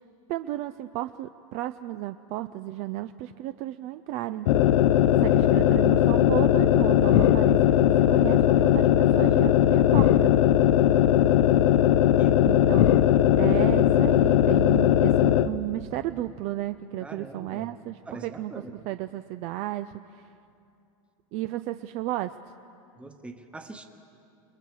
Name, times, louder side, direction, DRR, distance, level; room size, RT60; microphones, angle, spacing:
voice 1, 0.3-4.5 5.2-10.3 12.4-13.0 13.4-20.3 21.3-22.3, right 15 dB, 40° right, 11 dB, 0.4 m, -33 dB
sound 1, 4.5-15.5, left 11 dB, 70° left, 0.7 m, -19 dB
voice 2, 17.0-17.7 18.1-18.7 23.0-23.9, right 2 dB, 5° right, 6 dB, 1.1 m, -42 dB
29.0 x 20.5 x 4.7 m, 2.6 s
supercardioid pair, 140°, 17 cm